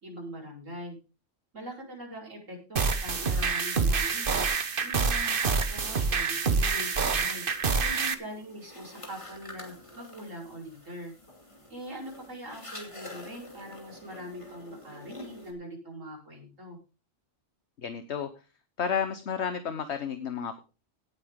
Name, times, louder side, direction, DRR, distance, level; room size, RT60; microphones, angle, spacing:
voice 1, 0.0-1.0 1.5-4.5 4.8-11.1 11.7-16.8, equal, 80° right, -1 dB, 5.6 m, -42 dB
sound 1, 2.8-8.1, right 4 dB, 45° right, 1.2 m, -27 dB
sound 2, 3.3-15.5, left 1 dB, 25° left, 2.8 m, -49 dB
voice 2, 17.8-18.3 18.8-20.6, left 7 dB, 60° left, 9 dB, 1.3 m, -31 dB
17.5 x 8.3 x 3.8 m, 0.31 s
omnidirectional pair, 1.3 m